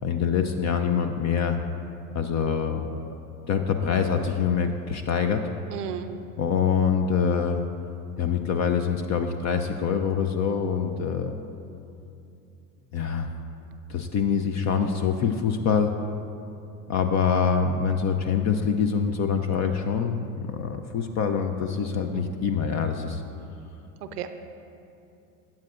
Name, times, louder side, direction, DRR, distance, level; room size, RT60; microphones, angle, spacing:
voice 1, 0.0-1.6 2.1-2.9 3.5-5.4 6.4-7.6 8.2-11.3 12.9-13.3 13.9-16.0 16.9-23.2, left 6 dB, 40° left, 6 dB, 0.6 m, -25 dB
voice 2, 5.7-6.1 22.1-22.4 24.0-24.3, right 8 dB, 85° right, 8 dB, 0.7 m, -34 dB
14.5 x 8.8 x 2.5 m, 2.7 s
hypercardioid pair, 85°, 45 cm